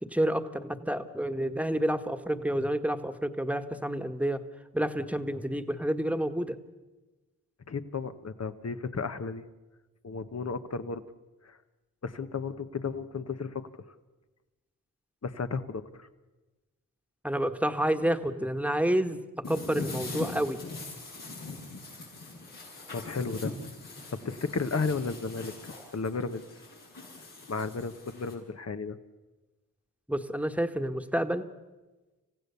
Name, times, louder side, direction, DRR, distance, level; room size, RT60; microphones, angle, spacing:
voice 1, 0.0-4.4 4.7-6.6 17.2-19.2 19.5-20.6 30.1-31.4, right 1 dB, 5° right, 9 dB, 1.5 m, -29 dB
voice 2, 7.7-9.4 10.0-11.0 11.4-11.6 12.0-13.6 15.2-16.1 22.9-23.5 24.1-26.4 27.5-29.0, left 4 dB, 50° left, 11 dB, 1.3 m, -33 dB
sound 1, 19.4-28.3, left 3 dB, 85° left, 7.8 m, -42 dB
28.0 x 15.5 x 7.0 m, 1.2 s
cardioid pair, 50°, 32 cm